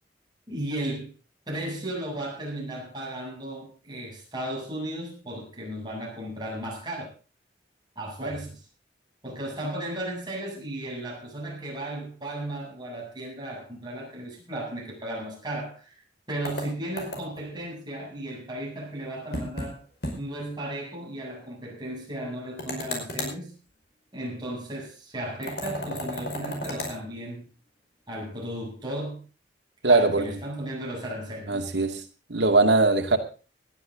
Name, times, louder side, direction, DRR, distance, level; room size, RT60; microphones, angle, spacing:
voice 1, 0.5-1.1 1.5-7.1 8.0-8.7 9.2-16.0 16.3-19.8 20.2-23.6 24.1-27.5 28.1-29.2 29.9-31.6, right 1 dB, 25° right, -2 dB, 7.9 m, -35 dB
sound 1, 16.4-17.5 19.3-19.7 20.0-20.2 20.5-20.6 22.6-23.4 25.4-27.0, left 1 dB, 60° left, 5.3 m, -33 dB
voice 2, 29.8-30.4 31.5-32.0 32.3-33.2, right 3 dB, 75° right, 5 dB, 2.5 m, -21 dB
19.5 x 12.0 x 3.8 m, 0.35 s
head